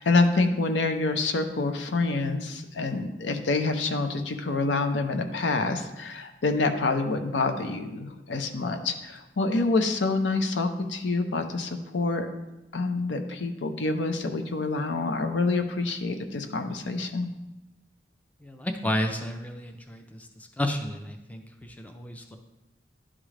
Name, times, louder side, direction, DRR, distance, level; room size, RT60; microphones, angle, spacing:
voice 1, 0.0-12.3 12.7-17.3, left 3 dB, 85° left, 7 dB, 0.6 m, -27 dB
voice 2, 18.4-20.0 20.6-22.4, left 1 dB, 10° left, 5 dB, 0.4 m, -31 dB
11.0 x 3.7 x 3.2 m, 0.97 s
head